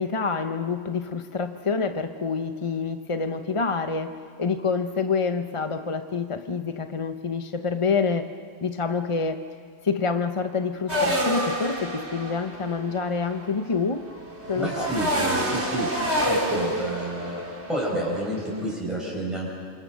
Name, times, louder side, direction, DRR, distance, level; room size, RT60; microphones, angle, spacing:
voice 1, 0.0-8.3 8.6-9.4 9.8-14.1 14.5-14.9, left 5 dB, 30° left, 7 dB, 0.7 m, -27 dB
sound 1, 10.9-18.6, equal, 55° right, 3.4 m, -28 dB
voice 2, 14.5-19.5, right 1 dB, ahead, -4 dB, 5.7 m, -30 dB
28.0 x 27.0 x 6.3 m, 2.1 s
omnidirectional pair, 1.4 m